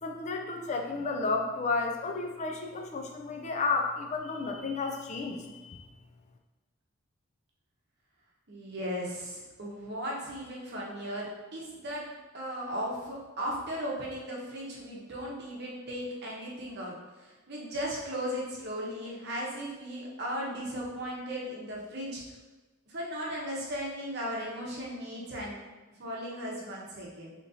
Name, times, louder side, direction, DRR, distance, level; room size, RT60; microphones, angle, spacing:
voice 1, 0.0-5.8, left 4 dB, 35° left, 3 dB, 0.4 m, -32 dB
voice 2, 8.5-11.3 11.5-12.0 12.3-16.9 17.5-22.2 22.9-25.6 26.0-27.3, equal, 50° right, -4 dB, 0.8 m, -36 dB
4.0 x 2.9 x 2.7 m, 1.2 s
head